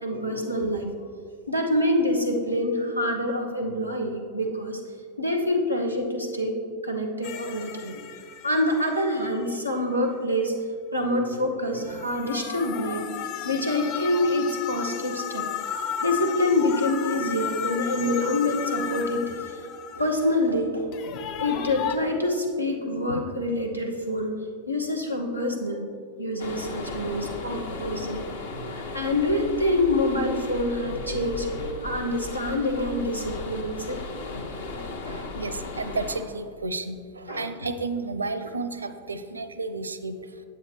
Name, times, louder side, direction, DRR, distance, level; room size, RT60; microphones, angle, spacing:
voice 1, 0.0-0.9 1.5-4.8 5.2-6.5 6.8-8.1 8.4-10.5 10.9-13.0 13.4-15.5 16.0-19.6 19.9-20.9 21.4-24.3 24.7-25.8 26.2-28.2 28.5-34.0 35.0-35.3 37.3-37.5, left 1 dB, 90° left, 2 dB, 0.9 m, -26 dB
sound 1, 7.2-9.5 11.7-20.5 20.9-22.0, left 8 dB, 40° left, 0.4 m, -34 dB
sound 2, 26.4-36.2, left 3 dB, 65° left, 0.9 m, -36 dB
voice 2, 35.3-40.5, right 3 dB, 75° right, 11 dB, 0.5 m, -32 dB
9.0 x 8.0 x 3.2 m, 2.1 s
figure-of-eight pair, 90°, 0 cm